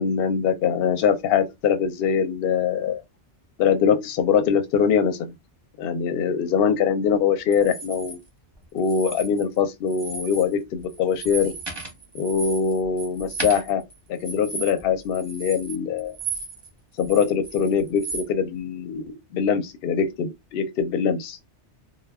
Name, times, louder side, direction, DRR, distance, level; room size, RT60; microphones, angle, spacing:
voice 1, 0.0-3.0 3.6-5.3 5.8-8.2 8.7-11.5 12.1-13.8 14.1-16.2 17.0-19.0 19.3-21.4, left 7 dB, 65° left, 0.7 m, -23 dB
sound 1, 7.5-8.2 8.8-9.6 9.9-10.5 10.8-16.7 17.0-18.3, right 4 dB, 25° right, 0.7 m, -35 dB
2.2 x 2.0 x 3.3 m
omnidirectional pair, 1.2 m